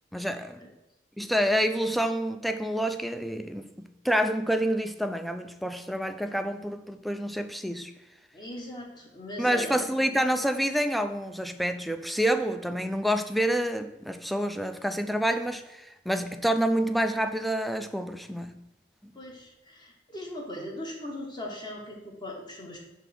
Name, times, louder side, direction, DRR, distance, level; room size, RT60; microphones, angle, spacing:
voice 1, 0.1-0.6 1.2-7.9 9.4-18.6, equal, ahead, 9 dB, 0.3 m, -28 dB
voice 2, 8.3-9.8 19.1-22.8, left 1 dB, 25° left, 0 dB, 1.2 m, -39 dB
5.6 x 3.6 x 5.8 m, 0.96 s
head